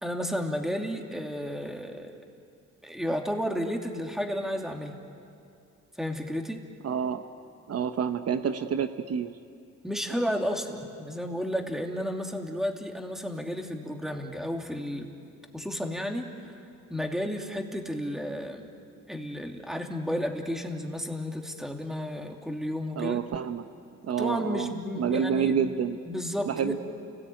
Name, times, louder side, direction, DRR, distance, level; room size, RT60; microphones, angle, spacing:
voice 1, 0.0-2.2 2.8-5.0 6.0-6.6 9.8-15.1 15.5-16.5 16.9-18.7 19.1-23.2 24.2-25.6 26.1-26.8, equal, ahead, 3 dB, 2.8 m, -32 dB
voice 2, 6.8-7.2 7.7-9.3 23.0-23.6 24.0-24.7 25.0-26.0 26.5-26.8, right 7 dB, 55° right, 8 dB, 1.0 m, -28 dB
29.0 x 19.5 x 9.4 m, 2.5 s
cardioid pair, 90°, 30 cm